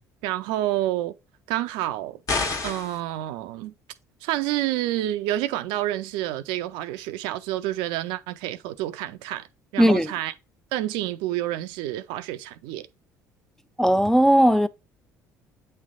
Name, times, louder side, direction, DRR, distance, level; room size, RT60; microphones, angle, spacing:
voice 1, 0.2-1.2 1.5-2.2 2.6-3.7 4.2-9.5 9.7-10.3 10.7-12.9, right 14 dB, 70° right, 0.5 m, -28 dB
sound 1, 2.3-3.0, left 3 dB, 40° left, 1.5 m, -27 dB
voice 2, 9.8-10.1 13.8-14.7, equal, 5° left, 0.5 m, -17 dB
8.0 x 3.2 x 3.6 m
hypercardioid pair, 60°, 9 cm